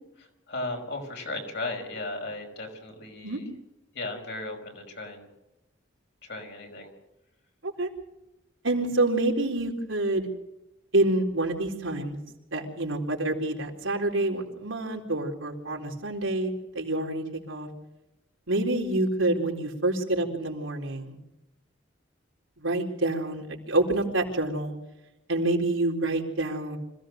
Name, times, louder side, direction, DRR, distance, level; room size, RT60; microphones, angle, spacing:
voice 1, 0.5-3.5 3.9-5.3 6.2-6.9, left 2 dB, 60° left, 2 dB, 5.6 m, -36 dB
voice 2, 8.6-10.3 10.9-12.2 12.5-17.7 18.5-21.2 22.6-24.7 25.3-26.8, right 2 dB, 85° right, 0 dB, 4.0 m, -27 dB
26.0 x 16.5 x 6.5 m, 0.91 s
head